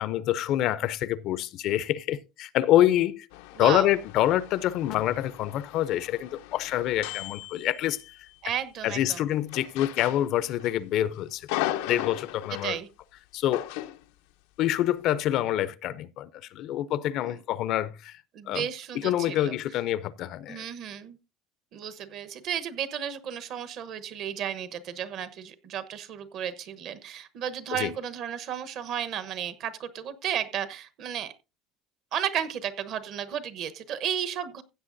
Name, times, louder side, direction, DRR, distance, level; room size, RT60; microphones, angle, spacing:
voice 1, 0.0-3.3 3.6-8.0 8.8-11.5 11.9-12.8 13.3-13.7 14.6-18.2 18.5-18.6 19.0-20.6 27.8-27.9, left 13 dB, 50° left, 0.5 m, -26 dB
sound 1, 3.3-8.3 9.5-10.8 11.1-12.8 13.5-14.0, left 14 dB, 90° left, 0.6 m, -37 dB
voice 2, 3.5-3.9 8.4-9.3 12.6-12.9 18.3-19.5 20.5-21.2 21.7-31.3 32.1-34.6, right 9 dB, 45° right, 1.0 m, -33 dB
15.5 x 8.2 x 2.6 m
cardioid pair, 165°, 0 cm